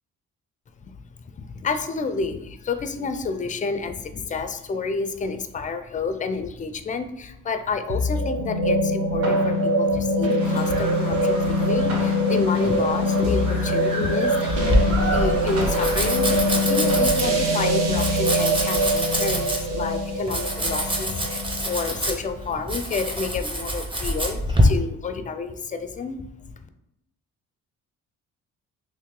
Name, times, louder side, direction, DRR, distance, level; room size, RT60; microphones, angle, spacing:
voice 1, 0.8-14.6 14.8-26.3, left 4 dB, 25° left, 8 dB, 0.4 m, -29 dB
sound 1, 7.9-22.3, equal, 55° right, 0.9 m, -23 dB
sound 2, 10.4-17.0, right 1 dB, 75° right, 1.4 m, -33 dB
Domestic sounds home sounds, 14.5-24.6, equal, 15° right, 0.7 m, -26 dB
3.0 x 2.8 x 3.6 m, 0.86 s
cardioid pair, 90°, 30 cm